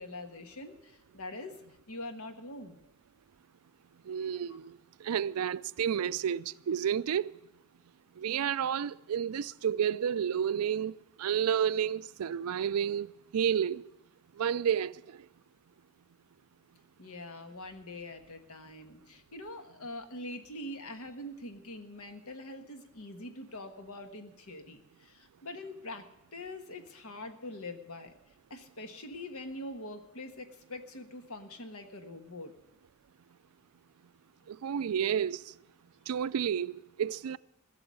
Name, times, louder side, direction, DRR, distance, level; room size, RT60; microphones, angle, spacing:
voice 1, 0.0-1.6 1.9-2.8 4.5-4.6 17.0-26.0 26.3-28.1 28.5-32.5, left 1 dB, 80° left, 1.5 m, -44 dB
voice 2, 4.1-7.3 8.2-13.9 14.4-15.2 34.5-35.4 36.1-37.4, right 8 dB, 85° right, 0.4 m, -31 dB
15.5 x 7.0 x 9.4 m
head